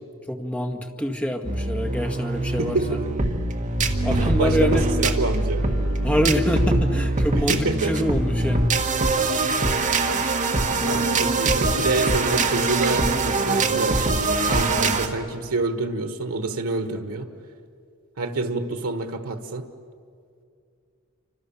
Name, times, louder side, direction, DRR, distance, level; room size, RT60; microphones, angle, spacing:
voice 1, 0.3-2.8 4.0-4.8 6.0-8.7, equal, 5° left, 4 dB, 1.9 m, -25 dB
sound 1, 1.4-15.1, right 2 dB, 35° right, 1.8 m, -23 dB
voice 2, 2.6-3.0 4.4-5.6 7.3-7.9 9.3-9.6 10.8-14.1 14.4-17.3 18.2-19.7, right 3 dB, 85° right, 8 dB, 1.4 m, -27 dB
sound 2, 5.5-8.8 9.1-9.3, left 2 dB, 75° left, 3.4 m, -43 dB
29.5 x 25.5 x 7.2 m, 2.4 s
head